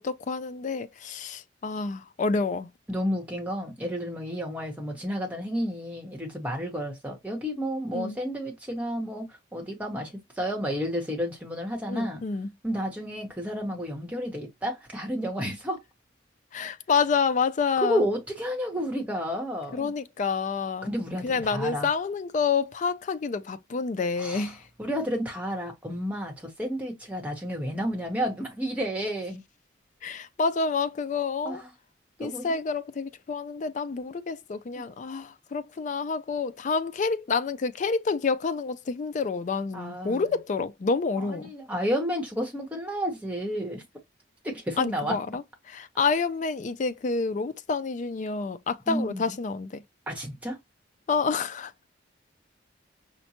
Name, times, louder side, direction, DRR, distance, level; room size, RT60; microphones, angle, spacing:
voice 1, 0.0-2.7 7.9-8.2 11.9-12.5 16.5-18.1 19.7-20.9 21.2-24.6 30.0-31.6 32.2-41.5 44.8-49.8 51.1-51.7, left 4 dB, 40° left, 0.3 m, -28 dB
voice 2, 2.9-12.2 12.6-15.8 17.8-19.9 20.8-21.9 24.2-24.5 24.8-29.4 31.4-31.7 32.2-32.6 34.7-34.8 39.7-40.4 41.2-43.8 44.4-45.2 48.9-49.3 50.1-50.6, equal, 10° right, 1.0 m, -31 dB
5.2 x 2.1 x 2.8 m
head